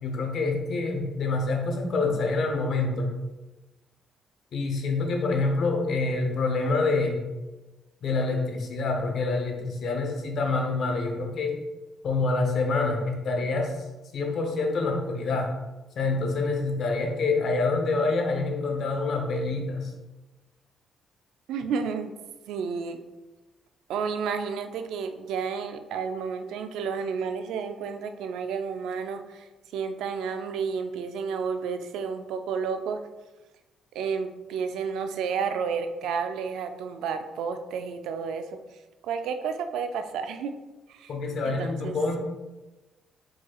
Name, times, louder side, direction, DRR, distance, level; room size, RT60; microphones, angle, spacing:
voice 1, 0.0-3.2 4.5-7.3 8.0-11.6 12.0-13.8 14.1-15.6 16.0-19.9 41.1-42.2, left 3 dB, 65° left, 3 dB, 0.8 m, -26 dB
voice 2, 21.5-22.1 22.5-23.0 23.9-29.5 29.7-33.0 33.9-38.5 39.0-40.5 40.9-41.1 41.4-41.9, right 6 dB, 85° right, 8 dB, 0.4 m, -31 dB
4.6 x 4.3 x 2.4 m, 1.1 s
cardioid pair, 90°, 0 cm